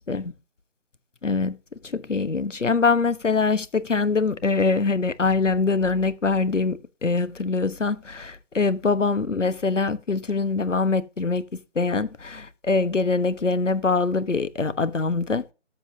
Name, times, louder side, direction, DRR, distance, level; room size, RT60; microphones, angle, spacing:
voice 1, 1.2-1.6 1.8-11.4 11.7-15.4, left 4 dB, 90° left, 1.2 m, -23 dB
13.5 x 7.3 x 2.8 m
figure-of-eight pair, 160°, 36 cm